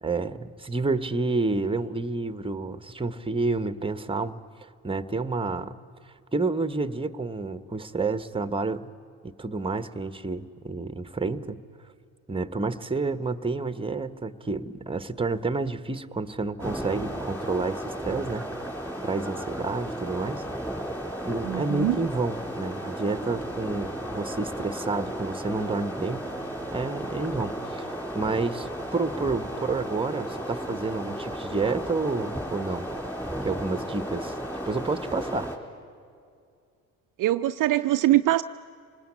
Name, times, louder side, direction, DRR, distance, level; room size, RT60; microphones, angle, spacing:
voice 1, 0.0-5.8 6.3-8.9 9.2-11.6 12.3-18.5 19.0-20.4 21.2-26.3 26.7-32.8 33.4-34.4 34.6-35.5, right 3 dB, 10° right, 12 dB, 1.1 m, -29 dB
sound 1, 16.6-35.6, right 1 dB, 5° left, 4.2 m, -34 dB
voice 2, 21.5-22.0 37.2-38.4, right 15 dB, 50° right, 9 dB, 0.6 m, -22 dB
26.0 x 20.0 x 8.7 m, 2.4 s
hypercardioid pair, 60°, 42 cm